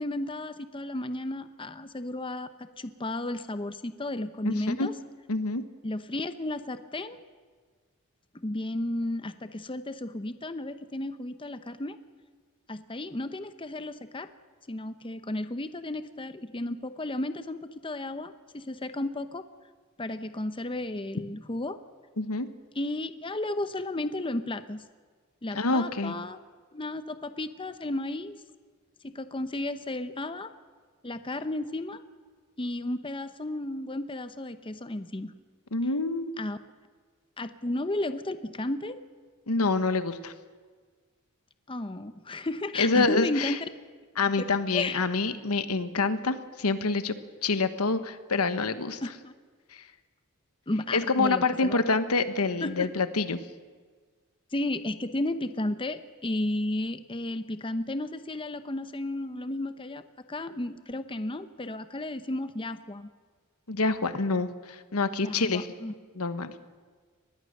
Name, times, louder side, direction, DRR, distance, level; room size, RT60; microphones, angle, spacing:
voice 1, 0.0-4.9 5.8-7.2 8.4-12.0 12.7-14.3 14.7-19.4 20.0-21.8 22.8-24.8 25.4-26.4 26.7-28.4 29.0-30.5 31.0-32.0 32.6-35.3 36.4-36.6 37.4-39.0 41.7-43.6 44.4-44.5 44.7-45.0 49.0-49.3 50.7-51.8 52.6-52.9 54.5-63.1 65.2-65.9, left 1 dB, 25° left, 11 dB, 0.8 m, -33 dB
voice 2, 4.4-4.9 5.3-5.6 22.2-22.5 25.5-26.1 35.7-36.3 39.5-40.3 42.8-43.6 44.2-47.2 47.4-49.0 50.9-53.4 63.7-65.7 66.1-66.5, left 3 dB, 90° left, 11 dB, 1.2 m, -26 dB
24.0 x 20.0 x 6.6 m, 1.5 s
head